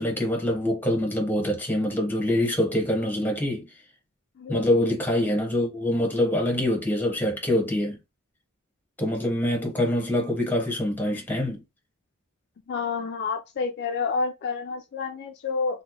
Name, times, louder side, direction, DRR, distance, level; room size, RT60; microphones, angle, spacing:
voice 1, 0.0-3.7 4.5-8.0 9.0-11.6, left 1 dB, 10° left, 0.9 m, -25 dB
voice 2, 4.4-4.9 12.7-15.8, left 4 dB, 50° left, 0.4 m, -29 dB
3.0 x 2.1 x 3.4 m
head